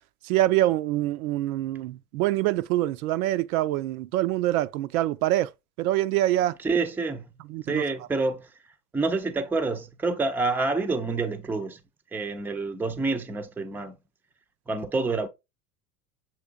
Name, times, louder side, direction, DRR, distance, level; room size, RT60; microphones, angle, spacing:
voice 1, 0.2-5.5 5.8-6.5 7.5-7.8, right 15 dB, 70° right, 0.5 m, -25 dB
voice 2, 6.6-7.3 7.7-8.5 8.9-11.8 12.1-14.0 14.7-15.3, right 3 dB, 5° right, 0.4 m, -27 dB
7.2 x 3.1 x 2.3 m
hypercardioid pair, 80°, 45 cm